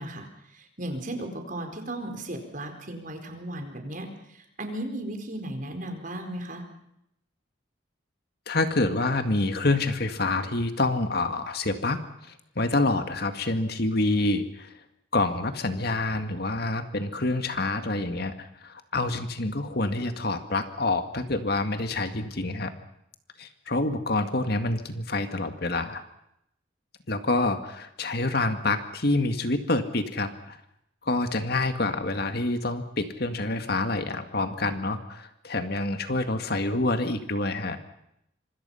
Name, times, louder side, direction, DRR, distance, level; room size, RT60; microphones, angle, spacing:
voice 1, 0.0-6.6, right 1 dB, 45° right, 5 dB, 4.4 m, -36 dB
voice 2, 8.5-14.7 15.1-22.7 23.4-26.0 27.1-30.6 31.0-37.8, left 2 dB, 55° left, 8 dB, 1.9 m, -27 dB
26.0 x 25.0 x 5.7 m, 0.78 s
head